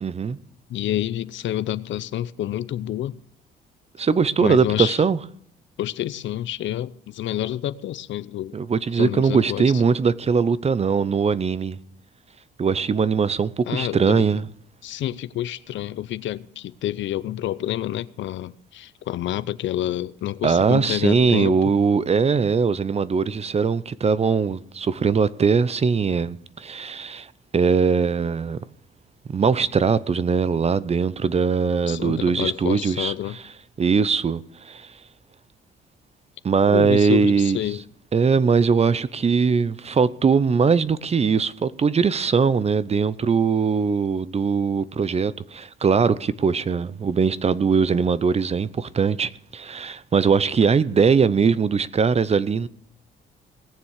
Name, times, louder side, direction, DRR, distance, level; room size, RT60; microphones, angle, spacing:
voice 1, 0.0-0.4 4.0-5.2 8.5-11.8 12.6-14.4 20.4-27.3 27.5-28.6 29.3-33.1 33.8-34.4 34.6-34.9 36.4-37.6 38.1-52.7, right 5 dB, 30° right, 0.6 m, -21 dB
voice 2, 0.7-3.2 4.4-5.0 5.8-8.5 8.9-9.8 13.7-14.3 14.8-21.7 31.9-33.4 36.7-37.8, left 13 dB, 70° left, 0.6 m, -28 dB
19.0 x 7.1 x 6.5 m
cardioid pair, 90°, 20 cm